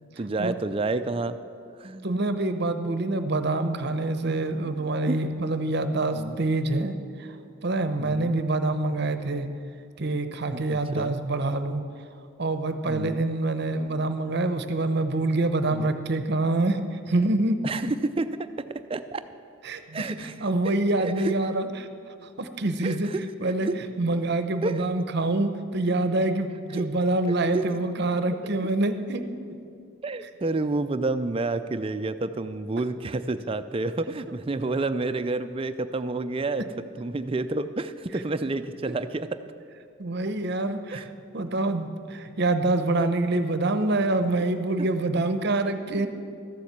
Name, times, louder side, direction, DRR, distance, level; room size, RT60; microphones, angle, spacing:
voice 1, 0.2-1.4 1.8-2.1 5.1-5.2 6.1-6.4 8.0-8.3 10.7-11.1 12.8-13.2 15.7-15.9 17.6-19.2 19.9-20.3 20.6-20.7 21.0-21.3 22.8-23.8 24.6-24.8 26.7-26.8 27.3-27.6 30.0-36.6 37.0-39.3 40.9-41.1, right 2 dB, 25° right, 11 dB, 0.4 m, -29 dB
voice 2, 2.0-7.4 7.6-9.5 10.0-11.9 12.4-17.6 19.6-21.7 22.2-23.1 23.4-23.7 24.0-29.2 40.0-41.1 41.3-46.1, right 2 dB, 50° right, 9 dB, 0.7 m, -26 dB
13.5 x 7.3 x 8.0 m, 2.4 s
head